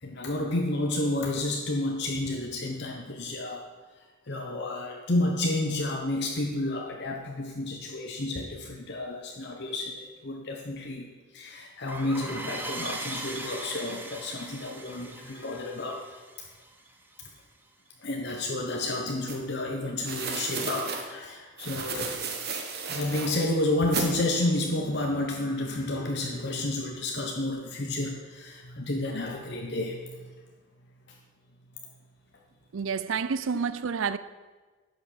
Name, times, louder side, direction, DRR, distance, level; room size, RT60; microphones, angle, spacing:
voice 1, 0.0-3.7 4.3-11.1 11.3-16.2 18.0-22.2 22.9-30.3, left 2 dB, 55° left, 1.0 m, -30 dB
sound 1, 11.9-17.2, right 2 dB, 10° right, 0.8 m, -39 dB
sound 2, 19.3-19.4 20.0-21.0 21.6-23.3 23.9-24.1, right 5 dB, 50° right, 1.4 m, -33 dB
voice 2, 32.7-34.2, right 6 dB, 70° right, 0.5 m, -29 dB
10.5 x 6.3 x 6.6 m
head